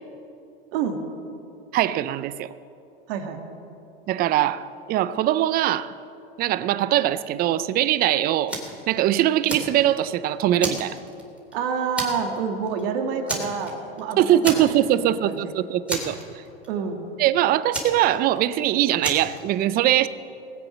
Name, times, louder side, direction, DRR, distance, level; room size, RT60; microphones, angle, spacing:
voice 1, 1.7-2.5 4.1-5.9 6.4-8.6 8.9-11.0 14.2-16.2 17.2-20.1, right 12 dB, 30° right, 16 dB, 0.5 m, -22 dB
voice 2, 3.1-3.4 11.5-14.7 14.9-15.5 16.7-17.0, right 6 dB, 60° right, 5 dB, 2.0 m, -28 dB
Fire, 8.5-8.8 9.2-10.1 10.6-11.5 12.0-12.4 12.7-12.8 13.3-14.0 14.4-15.0 15.3-15.4 15.9-16.7 17.7-18.6 19.0-19.4, right 1 dB, 5° right, 2.7 m, -31 dB
20.0 x 7.7 x 6.2 m, 2.7 s
hypercardioid pair, 120°, 31 cm